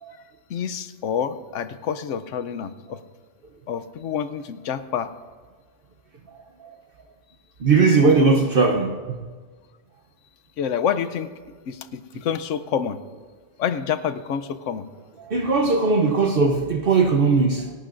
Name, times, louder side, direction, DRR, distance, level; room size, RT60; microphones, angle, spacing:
voice 1, 0.5-3.0 3.7-5.1 10.6-11.3 11.7-13.0 13.6-14.8, left 8 dB, 90° left, 1.0 m, -27 dB
voice 2, 7.6-9.2 15.3-17.7, right 4 dB, 55° right, 0.9 m, -19 dB
27.5 x 11.5 x 2.5 m
omnidirectional pair, 1.2 m